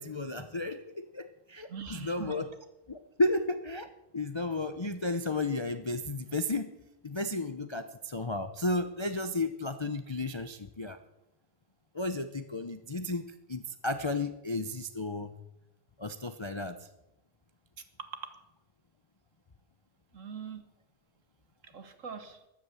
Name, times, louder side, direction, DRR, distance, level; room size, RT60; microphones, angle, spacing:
voice 1, 0.0-2.5 2.9-3.9 4.1-6.7 7.0-11.0 11.9-15.4 16.0-16.8, left 2 dB, 35° left, 8 dB, 0.4 m, -33 dB
voice 2, 1.7-2.3 18.0-18.3 20.1-20.6 21.6-22.4, right 6 dB, 50° right, 9 dB, 1.6 m, -42 dB
14.0 x 11.0 x 7.1 m, 0.91 s
omnidirectional pair, 1.7 m